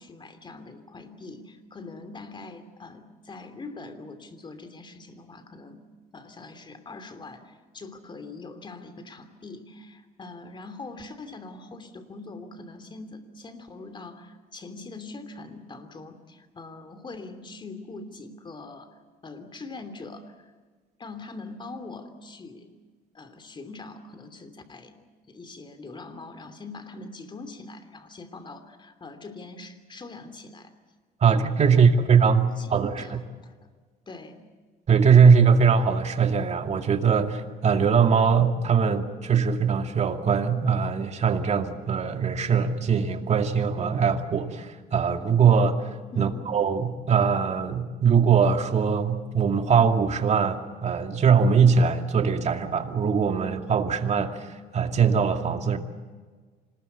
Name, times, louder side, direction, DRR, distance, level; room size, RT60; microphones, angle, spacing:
voice 1, 0.0-5.8 6.1-20.5 21.0-22.7 23.1-30.7 31.7-31.9 32.5-33.5 34.1-34.4 46.1-46.5, left 3 dB, 30° left, 9 dB, 3.0 m, -43 dB
voice 2, 31.2-33.2 34.9-55.8, right 6 dB, 40° right, 6 dB, 2.3 m, -21 dB
26.5 x 20.0 x 8.3 m, 1.4 s
cardioid pair, 110°, 17 cm